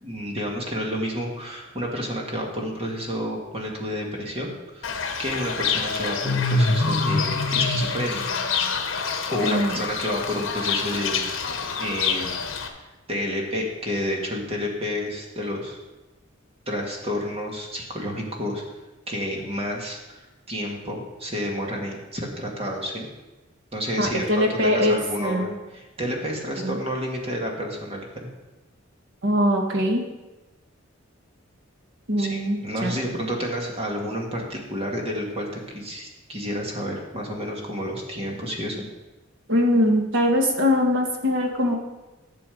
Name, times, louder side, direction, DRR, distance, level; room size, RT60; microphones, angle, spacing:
voice 1, 0.0-4.9 5.2-8.2 9.3-12.3 12.7-12.8 13.1-15.8 16.7-18.6 19.1-23.1 23.7-28.3 32.2-38.9, equal, 30° right, -1 dB, 1.9 m, -30 dB
Fowl / Bird, 4.8-12.7, left 4 dB, 70° left, 1.1 m, -26 dB
voice 2, 9.4-9.7 24.0-25.5 26.6-26.8 29.2-30.0 32.1-33.0 39.5-41.7, equal, 65° right, 2 dB, 1.5 m, -22 dB
11.0 x 6.8 x 5.2 m, 1.1 s
head